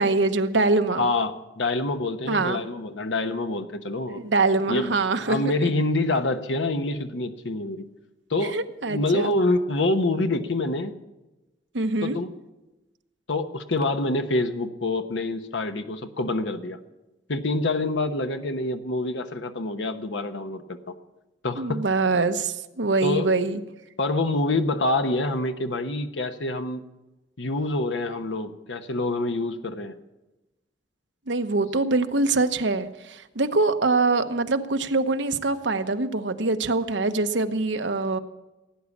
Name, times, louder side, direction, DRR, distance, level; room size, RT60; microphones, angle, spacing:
voice 1, 0.0-1.1 2.3-2.6 4.1-5.5 8.4-9.3 11.7-12.2 21.6-23.6 31.3-38.2, right 3 dB, 80° right, 8 dB, 1.1 m, -24 dB
voice 2, 1.0-4.2 4.7-4.9 5.3-7.9 8.3-8.6 8.9-10.9 12.0-12.3 13.3-16.8 17.3-20.9 21.4-21.8 23.0-23.3 24.0-26.8 27.4-29.9, left 2 dB, 90° left, 8 dB, 1.0 m, -26 dB
17.0 x 9.7 x 7.3 m, 1.0 s
head